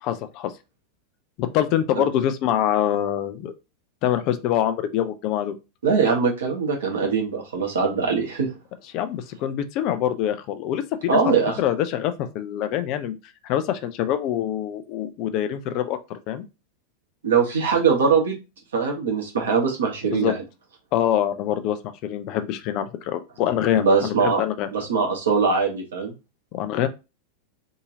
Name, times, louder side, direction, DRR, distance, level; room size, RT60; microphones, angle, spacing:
voice 1, 0.0-0.5 1.4-3.5 4.0-5.5 8.9-13.2 13.4-16.4 20.1-20.3 20.9-24.7 26.5-26.9, left 11 dB, 40° left, 0.4 m, -25 dB
voice 2, 5.8-8.5 11.1-11.5 17.2-18.3 18.7-20.4 23.8-24.4 24.7-26.1, right 5 dB, 65° right, 1.3 m, -21 dB
3.6 x 2.7 x 2.7 m
figure-of-eight pair, 90°, 0 cm